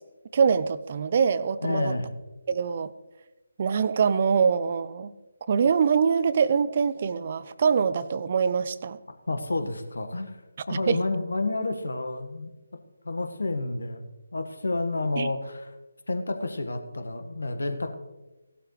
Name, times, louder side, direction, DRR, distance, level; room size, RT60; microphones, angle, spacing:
voice 1, 0.3-1.9 2.5-2.9 3.6-5.1 5.5-9.0 10.7-11.0 15.2-15.3, right 6 dB, 40° right, 15 dB, 0.7 m, -24 dB
voice 2, 1.6-2.1 9.3-10.4 10.7-12.5 13.0-15.7 16.1-17.9, left 2 dB, 75° left, 8 dB, 1.6 m, -30 dB
17.0 x 12.0 x 3.3 m, 1.1 s
figure-of-eight pair, 150°, 0 cm